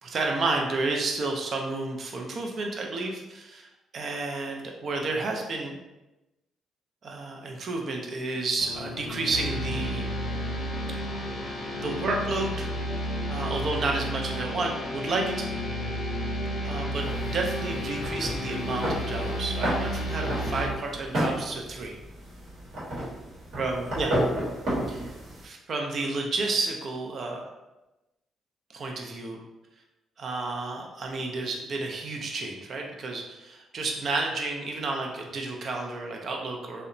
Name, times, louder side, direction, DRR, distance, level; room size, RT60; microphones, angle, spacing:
voice 1, 0.0-3.7 3.9-5.8 7.0-10.1 11.8-12.7 13.3-15.5 16.6-17.1 17.3-22.0 23.6-24.1 24.9-25.1 25.4-27.4 28.7-29.4 30.2-36.9, right 3 dB, 50° right, 1 dB, 0.4 m, -31 dB
sound 1, 8.6-20.7, left 2 dB, 75° left, 0.4 m, -38 dB
sound 2, 9.3-20.7, equal, 40° left, 0.9 m, -33 dB
sound 3, 17.0-25.4, equal, 70° right, 1.0 m, -32 dB
2.7 x 2.1 x 2.5 m, 1.0 s
cardioid pair, 90°, 0 cm